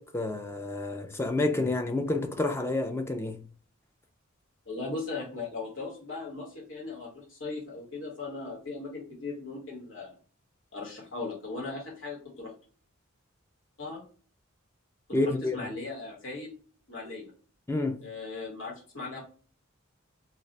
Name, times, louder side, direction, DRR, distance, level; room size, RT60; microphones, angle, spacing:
voice 1, 0.0-3.4 15.1-15.6 17.7-18.0, left 2 dB, 10° left, 0.3 m, -29 dB
voice 2, 4.6-10.2 10.7-12.5 13.8-14.0 15.2-16.5 16.9-17.3 18.0-19.2, left 3 dB, 70° left, 1.2 m, -38 dB
2.3 x 2.2 x 3.8 m
head